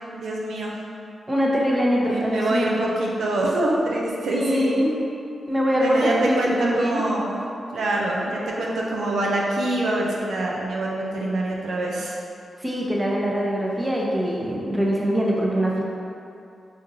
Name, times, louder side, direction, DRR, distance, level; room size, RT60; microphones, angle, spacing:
voice 1, 0.1-0.7 1.9-4.8 5.8-7.4 7.7-12.2, right 1 dB, 80° right, -3 dB, 0.5 m, -25 dB
voice 2, 1.3-2.9 4.3-4.9 5.5-7.0 12.6-15.8, equal, 15° right, -4 dB, 0.7 m, -23 dB
4.9 x 2.5 x 2.7 m, 2.6 s
cardioid pair, 65°, 0 cm